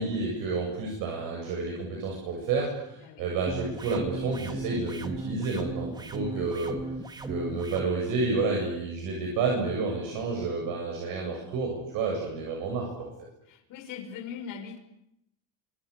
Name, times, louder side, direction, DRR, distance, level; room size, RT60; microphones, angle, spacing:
voice 1, 0.0-6.8 7.2-13.1, right 3 dB, 50° right, 0 dB, 7.8 m, -30 dB
sound 1, 3.5-7.9, right 2 dB, 10° right, 1.4 m, -37 dB
voice 2, 13.5-14.8, left 7 dB, 45° left, 7 dB, 5.6 m, -40 dB
29.0 x 27.0 x 6.8 m, 0.79 s
cardioid pair, 165°, 42 cm